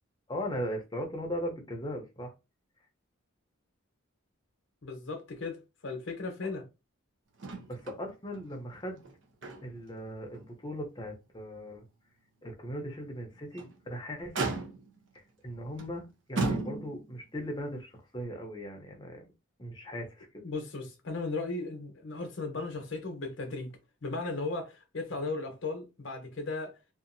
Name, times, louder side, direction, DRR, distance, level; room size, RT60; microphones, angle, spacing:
voice 1, 0.3-2.3 6.4-6.5 7.7-9.0 9.6-11.9 12.4-14.5 15.1-19.3 19.6-20.3, equal, 20° left, 0.7 m, -38 dB
voice 2, 4.8-6.6 20.4-23.7 24.0-26.8, left 3 dB, 60° left, 0.8 m, -36 dB
Motor vehicle (road), 7.4-8.0 8.3-8.4 9.0-9.9 10.3-10.5 11.0-11.1 13.3-13.8 14.3-15.0 15.8-15.9 16.4-17.2 18.2-18.3, right 3 dB, 60° right, 0.7 m, -34 dB
2.8 x 2.4 x 2.6 m
head